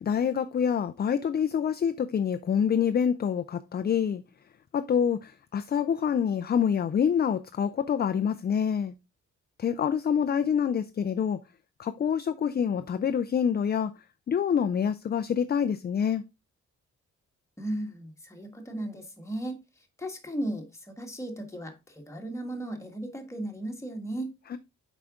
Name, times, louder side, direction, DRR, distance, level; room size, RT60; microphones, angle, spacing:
voice 1, 0.0-4.2 4.7-8.9 9.6-11.4 11.8-13.9 14.3-16.2 24.5-24.6, left 7 dB, 35° left, 0.4 m, -26 dB
voice 2, 17.6-24.3, right 1 dB, 10° left, 1.5 m, -36 dB
7.8 x 5.0 x 3.6 m
wide cardioid pair, 155°, 29 cm